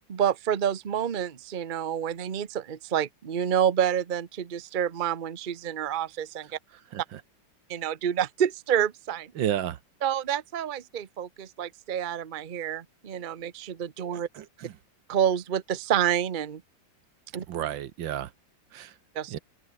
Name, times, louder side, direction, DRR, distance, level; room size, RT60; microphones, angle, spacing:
voice 1, 0.1-6.6 7.7-9.3 10.0-14.3 15.1-16.6 17.3-17.4 19.1-19.4, right 9 dB, 35° right, 0.8 m, -28 dB
voice 2, 9.4-9.8 14.3-14.7 17.5-18.3 18.7-18.9 19.3-19.4, right 11 dB, 80° right, 1.7 m, -31 dB
open air
omnidirectional pair, 2.0 m